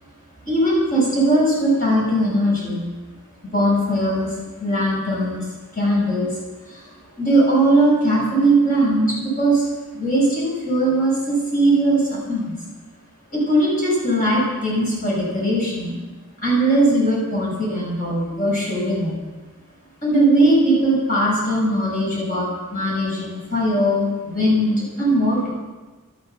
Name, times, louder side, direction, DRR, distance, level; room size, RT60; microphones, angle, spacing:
voice 1, 0.4-2.8 3.5-4.3 4.6-5.4 5.7-6.4 6.7-6.8 7.2-9.7 9.9-12.5 13.3-15.9 16.4-19.2 20.0-25.5, right 1 dB, 40° left, -5 dB, 6.9 m, -19 dB
14.5 x 13.0 x 6.9 m, 1.2 s
head